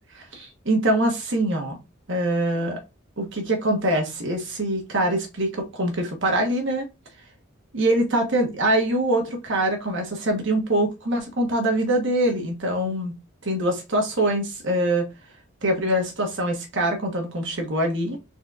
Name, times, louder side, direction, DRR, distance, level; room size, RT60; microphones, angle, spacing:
voice 1, 0.1-1.8 2.1-2.8 3.2-6.9 7.7-13.1 13.4-15.1 15.6-18.2, right 1 dB, 65° right, 1.3 m, -24 dB
4.4 x 4.0 x 2.5 m
head